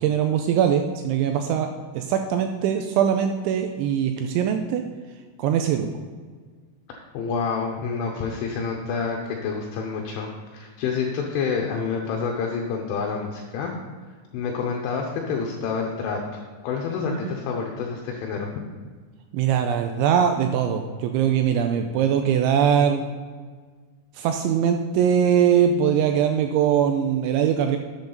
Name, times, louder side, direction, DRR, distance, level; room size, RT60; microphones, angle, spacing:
voice 1, 0.0-4.8 5.4-5.9 17.1-17.2 19.3-23.1 24.2-27.8, right 8 dB, 85° right, 5 dB, 2.7 m, -21 dB
voice 2, 6.9-13.7 14.3-16.2 16.6-18.5, left 5 dB, 75° left, 0 dB, 3.3 m, -28 dB
12.0 x 8.3 x 4.0 m, 1.5 s
omnidirectional pair, 5.9 m